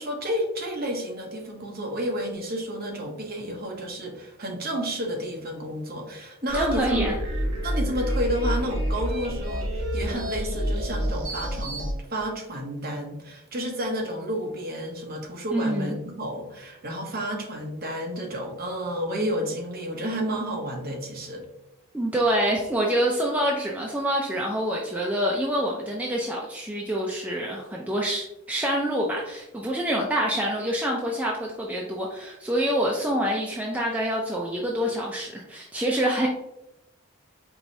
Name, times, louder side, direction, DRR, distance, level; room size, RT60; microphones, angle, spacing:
voice 1, 0.0-7.2 7.6-21.5, equal, 45° right, 1 dB, 0.7 m, -31 dB
voice 2, 6.5-7.2 15.5-16.0 21.9-36.3, equal, 5° right, -2 dB, 0.3 m, -26 dB
sound 1, 6.5-11.9, equal, 90° right, 1.2 m, -28 dB
4.7 x 3.0 x 2.6 m, 0.89 s
head